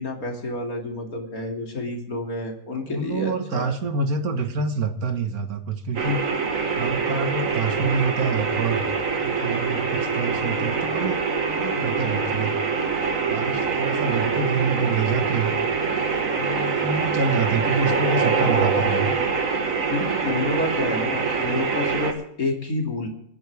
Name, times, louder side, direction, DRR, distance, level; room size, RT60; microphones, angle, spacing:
voice 1, 0.0-3.7 19.9-23.1, left 2 dB, 75° left, 1 dB, 3.3 m, -29 dB
voice 2, 2.7-6.2 6.8-11.2 11.5-12.5 13.3-15.5 16.3-19.1, right 4 dB, 85° right, 7 dB, 2.0 m, -27 dB
sound 1, 6.0-22.1, right 5 dB, 65° right, 2.1 m, -24 dB
27.0 x 11.0 x 3.6 m, 0.71 s
omnidirectional pair, 1.5 m